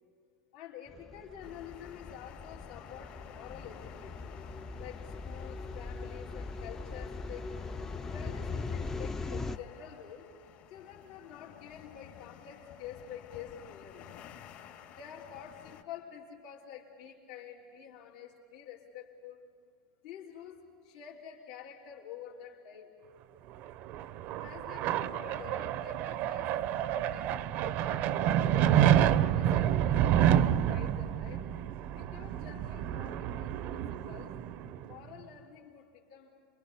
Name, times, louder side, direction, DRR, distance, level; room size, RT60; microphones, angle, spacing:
voice 1, 0.5-4.4 4.8-7.6 8.1-10.3 10.7-14.1 14.9-19.4 20.0-22.9 24.4-26.6 26.9-28.0 28.6-30.0 30.4-31.5 31.9-34.3 34.8-36.3, left 9 dB, 75° left, -2 dB, 3.3 m, -48 dB
sound 1, 0.9-9.6, left 3 dB, 15° left, 0.6 m, -40 dB
sound 2, 1.4-15.8, left 10 dB, 55° left, 2.4 m, -52 dB
sound 3, 23.7-34.9, right 10 dB, 50° right, 0.8 m, -28 dB
27.5 x 23.0 x 8.3 m, 2.3 s
supercardioid pair, 130°, 4 cm